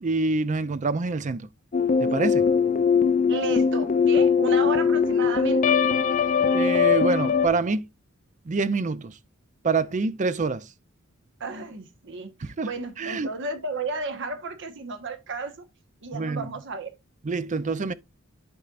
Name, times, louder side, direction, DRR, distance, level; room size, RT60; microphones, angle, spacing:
voice 1, 0.0-1.5 2.0-2.5 6.5-7.8 8.5-9.1 9.6-10.6 12.4-12.7 13.0-13.3 16.1-16.5 17.2-17.9, right 3 dB, 35° right, 0.5 m, -26 dB
sound 1, 1.7-7.5, left 6 dB, 40° left, 0.5 m, -21 dB
voice 2, 3.3-5.8 11.4-12.3 12.6-15.6 16.0-16.9, right 3 dB, 60° right, 1.2 m, -33 dB
11.5 x 4.4 x 2.5 m
head